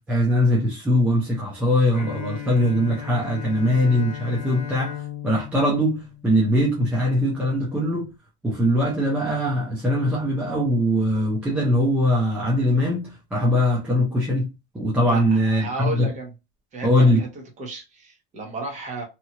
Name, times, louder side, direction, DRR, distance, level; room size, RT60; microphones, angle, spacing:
voice 1, 0.1-4.9 5.2-8.1 8.4-14.5 14.7-16.1 16.8-17.2, equal, 5° right, 0.4 m, -21 dB
Bowed string instrument, 1.9-6.8, left 10 dB, 20° left, 1.2 m, -36 dB
voice 2, 15.1-16.3 16.7-17.3 17.6-19.0, right 3 dB, 20° right, 0.9 m, -33 dB
2.8 x 2.3 x 2.8 m
supercardioid pair, 155°, 33 cm